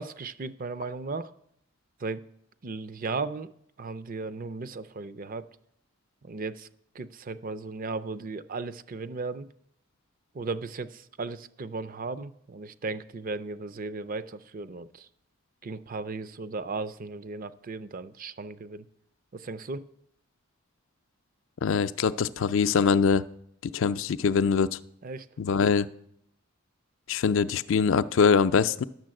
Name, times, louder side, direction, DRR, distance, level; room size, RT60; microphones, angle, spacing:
voice 1, 0.0-1.3 2.0-2.3 2.6-3.5 3.8-5.5 6.2-6.7 6.9-9.5 10.3-15.1 15.6-18.9 19.3-19.9 25.0-25.3, right 3 dB, 40° right, 0.5 m, -36 dB
voice 2, 21.6-23.2 23.7-24.8 25.4-25.9 27.1-28.8, left 6 dB, 65° left, 0.4 m, -23 dB
10.5 x 7.0 x 7.6 m
head